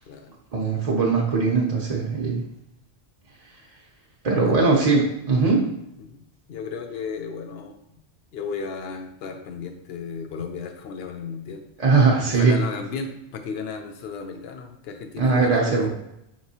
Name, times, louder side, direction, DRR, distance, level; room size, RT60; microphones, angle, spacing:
voice 1, 0.5-2.4 4.2-5.6 11.8-12.6 15.2-15.9, right 4 dB, 45° right, -2 dB, 0.6 m, -20 dB
voice 2, 6.5-8.0 8.3-11.6 12.3-15.9, left 5 dB, 70° left, 6 dB, 0.8 m, -34 dB
5.1 x 3.0 x 2.7 m, 0.82 s
omnidirectional pair, 1.1 m